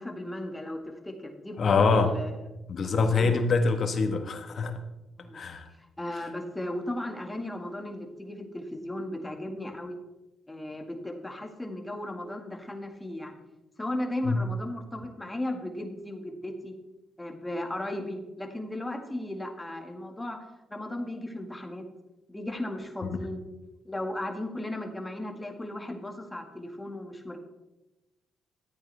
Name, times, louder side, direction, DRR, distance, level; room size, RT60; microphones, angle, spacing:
voice 1, 0.0-2.3 2.8-3.4 5.2-5.4 5.8-10.0 10.5-13.3 13.8-16.7 17.2-20.4 20.7-21.8 22.3-23.5 23.8-27.4, left 1 dB, 15° left, 3 dB, 2.0 m, -36 dB
voice 2, 1.6-2.1 2.7-4.8 5.3-5.7 14.2-14.4, left 4 dB, 55° left, 6 dB, 1.5 m, -24 dB
14.0 x 9.0 x 3.5 m, 1.0 s
supercardioid pair, 65°, 0 cm